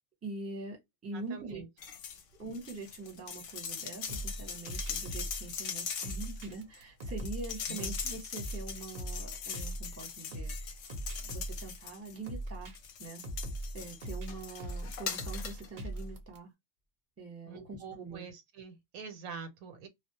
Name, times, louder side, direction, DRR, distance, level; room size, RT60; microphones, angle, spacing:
voice 1, 0.2-1.6 2.3-10.8 11.2-12.7 13.0-13.2 13.7-16.5 17.2-18.2, right 3 dB, 15° right, 0.8 m, -44 dB
voice 2, 1.1-1.7 7.7-7.9 17.5-19.9, right 5 dB, 80° right, 1.1 m, -45 dB
sound 1, 1.8-2.2 2.5-12.3 12.7-15.7 16.0-16.1, left 7 dB, 70° left, 0.9 m, -41 dB
sound 2, 4.1-16.4, right 1 dB, 45° right, 0.6 m, -40 dB
2.3 x 2.0 x 2.7 m
omnidirectional pair, 1.5 m